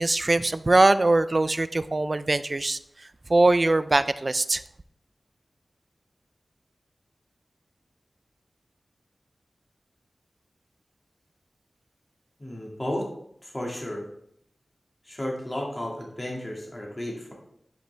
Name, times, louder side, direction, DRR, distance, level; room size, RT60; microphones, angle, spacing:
voice 1, 0.0-2.8 3.3-4.6, right 2 dB, 40° right, 14 dB, 0.4 m, -21 dB
voice 2, 12.4-13.1 13.4-14.1 15.1-17.3, left 1 dB, 25° left, -1 dB, 2.0 m, -33 dB
10.0 x 5.3 x 3.3 m, 0.72 s
wide cardioid pair, 70°, 0 cm